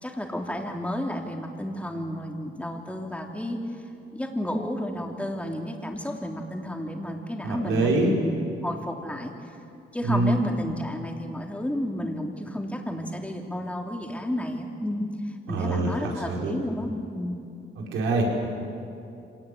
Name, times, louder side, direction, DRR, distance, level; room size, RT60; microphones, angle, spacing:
voice 1, 0.0-3.6 4.1-9.5 9.9-17.4, equal, 5° left, 1 dB, 3.2 m, -32 dB
voice 2, 7.4-8.1 10.0-10.4 15.5-16.5 17.9-18.3, right 2 dB, 90° right, -1 dB, 5.1 m, -25 dB
25.5 x 19.0 x 8.6 m, 2.6 s
cardioid pair, 90°, 20 cm